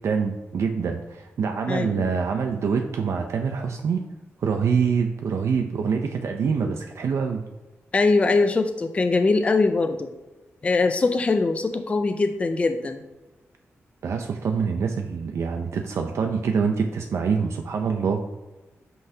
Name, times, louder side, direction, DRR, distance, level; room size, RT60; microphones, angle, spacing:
voice 1, 0.0-4.0 4.4-7.4 14.0-18.2, right 5 dB, 70° right, 4 dB, 0.5 m, -25 dB
voice 2, 1.7-2.1 7.9-10.1 10.6-13.0, left 3 dB, 25° left, 7 dB, 0.4 m, -22 dB
9.1 x 5.6 x 2.8 m, 1.1 s
wide cardioid pair, 170°, 5 cm